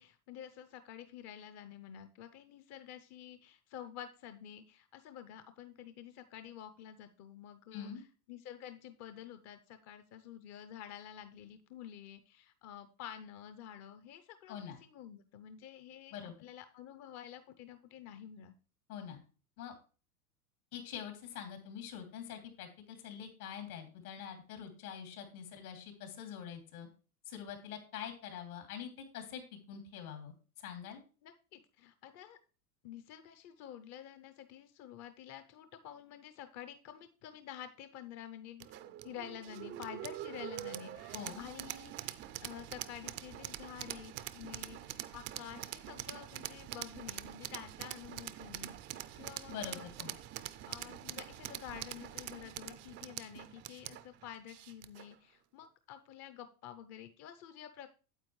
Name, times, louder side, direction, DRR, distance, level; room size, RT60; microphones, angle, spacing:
voice 1, 0.0-18.5 31.2-32.4 32.8-38.7 39.0-42.2 42.4-49.9 50.7-57.9, left 10 dB, 35° left, 10 dB, 0.6 m, -50 dB
voice 2, 20.7-26.9 27.3-31.0 41.1-41.5 49.5-50.1, left 8 dB, 70° left, 5 dB, 2.9 m, -45 dB
sound 1, 38.6-55.1, right 13 dB, 30° right, 0.4 m, -45 dB
9.0 x 8.0 x 3.1 m, 0.36 s
hypercardioid pair, 105°, 45 cm